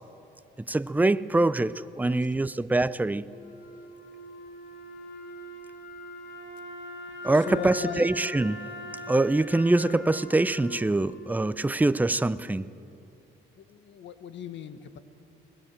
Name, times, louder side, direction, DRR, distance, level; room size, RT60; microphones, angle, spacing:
voice 1, 0.7-3.2 7.2-8.7 9.1-12.7, right 2 dB, 10° right, 0.5 m, -24 dB
voice 2, 2.0-2.5 7.3-8.1 13.6-15.0, left 9 dB, 65° left, 1.4 m, -38 dB
Wind instrument woodwind instrument, 3.2-12.3, equal, 85° left, 4.1 m, -41 dB
21.5 x 19.5 x 7.5 m
cardioid pair, 90°, 20 cm